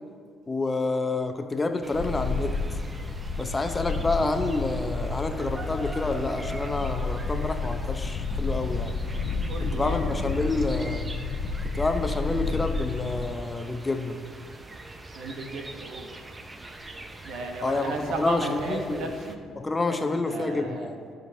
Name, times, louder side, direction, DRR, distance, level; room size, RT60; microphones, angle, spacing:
voice 1, 0.5-2.6 3.4-9.0 9.6-11.0 11.6-14.2 17.6-19.2 19.6-21.0, left 3 dB, 25° left, 7 dB, 0.7 m, -28 dB
sound 1, 1.8-19.4, right 2 dB, 25° right, 0.7 m, -43 dB
Wind, 1.9-13.2, left 4 dB, 65° left, 0.8 m, -31 dB
voice 2, 9.5-10.0 15.1-16.1 17.2-19.4 20.2-20.9, right 3 dB, 70° right, 3 dB, 1.0 m, -34 dB
14.0 x 5.2 x 2.7 m, 2.1 s
supercardioid pair, 60°, 0 cm